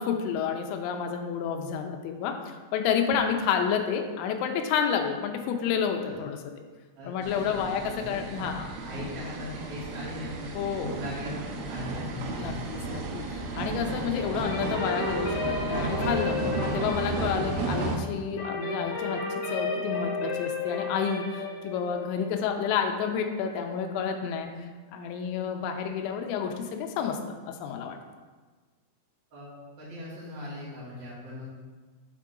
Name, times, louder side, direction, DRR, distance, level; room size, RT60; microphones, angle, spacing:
voice 1, 0.0-6.5 7.0-8.7 10.5-11.0 12.4-24.5 24.9-27.2 27.5-28.0, left 7 dB, 85° left, 4 dB, 3.0 m, -30 dB
sound 1, 7.2-18.0, right 3 dB, 90° right, 3.1 m, -33 dB
voice 2, 7.5-8.2 8.8-12.6 29.3-31.4, left 2 dB, 45° right, -8 dB, 2.1 m, -40 dB
sound 2, 14.4-24.1, left 3 dB, 65° left, 3.2 m, -34 dB
7.3 x 3.7 x 3.7 m, 1.4 s
omnidirectional pair, 5.5 m